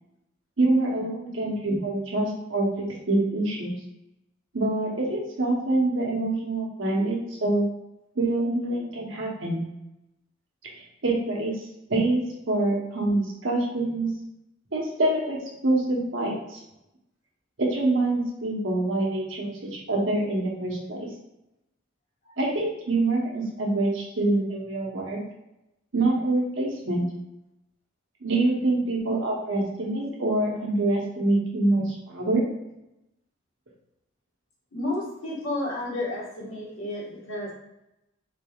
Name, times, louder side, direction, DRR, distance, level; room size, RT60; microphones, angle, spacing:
voice 1, 0.6-3.7 4.5-7.7 8.2-9.6 11.0-11.6 11.9-14.1 14.7-15.4 15.6-16.6 17.6-21.1 22.4-25.2 25.9-27.0 28.2-32.4, right 2 dB, 75° right, -2 dB, 0.9 m, -25 dB
voice 2, 34.7-37.5, left 2 dB, 85° left, -5 dB, 1.4 m, -32 dB
3.8 x 3.3 x 2.3 m, 0.89 s
head